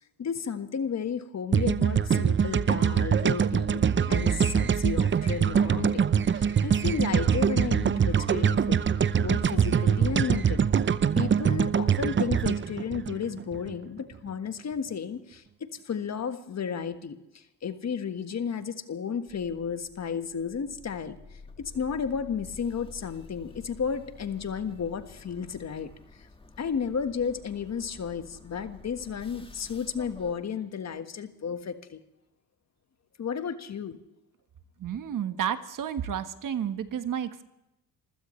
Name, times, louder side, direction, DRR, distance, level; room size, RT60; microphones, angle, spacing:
voice 1, 0.2-6.0 6.3-8.8 9.2-10.7 11.1-17.2 17.6-21.2 21.6-25.9 26.6-32.0 33.2-34.0, left 6 dB, 40° left, 9 dB, 1.5 m, -33 dB
sound 1, 1.5-13.7, right 7 dB, 30° right, 0.7 m, -24 dB
sound 2, 19.3-30.4, left 4 dB, 15° left, 1.7 m, -50 dB
voice 2, 34.8-37.4, right 9 dB, 50° right, 10 dB, 1.4 m, -31 dB
26.0 x 16.0 x 3.3 m, 0.89 s
supercardioid pair, 70°, 40 cm